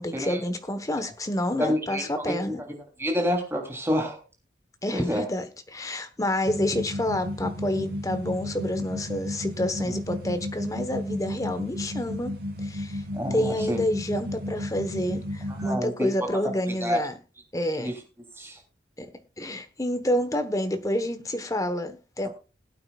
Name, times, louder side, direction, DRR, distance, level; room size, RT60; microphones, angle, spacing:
voice 1, 0.0-2.6 4.8-12.3 12.6-13.0 13.3-17.1 17.5-17.9 19.0-19.1 19.4-22.3, left 1 dB, 20° left, 1.2 m, -28 dB
voice 2, 1.6-2.5 3.0-4.2 4.9-5.3 13.1-13.8 15.5-16.1 16.8-17.0 17.8-17.9 18.4-18.6 22.2-22.3, equal, 15° right, 3.2 m, -28 dB
sound 1, 6.5-15.7, left 1 dB, 55° right, 3.4 m, -33 dB
20.5 x 8.8 x 2.4 m
head